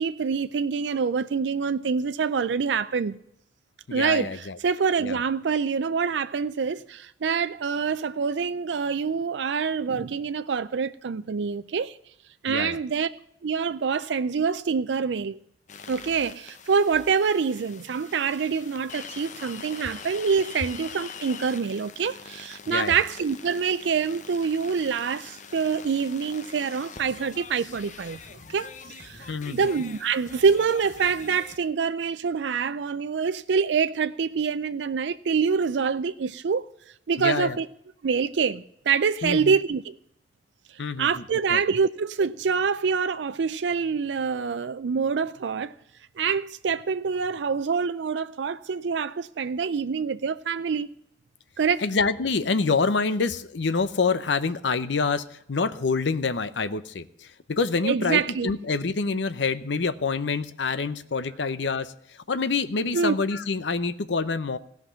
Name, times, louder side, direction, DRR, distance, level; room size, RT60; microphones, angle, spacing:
voice 1, 0.0-3.2 3.9-12.0 12.4-13.1 13.4-15.4 15.9-28.2 28.5-36.6 37.1-37.7 38.0-40.0 40.8-45.7 46.2-50.9 51.6-51.8 57.8-58.5 62.9-63.2, right 5 dB, 80° right, 0.4 m, -26 dB
voice 2, 3.9-4.6 5.0-5.2 12.5-12.8 22.7-23.0 29.3-29.7 37.2-37.6 39.2-39.5 40.8-41.1 41.5-41.6 51.8-61.9 62.3-64.6, left 4 dB, 85° left, 0.7 m, -26 dB
sound 1, 15.7-31.6, left 6 dB, 45° left, 0.8 m, -44 dB
16.5 x 5.9 x 9.9 m
head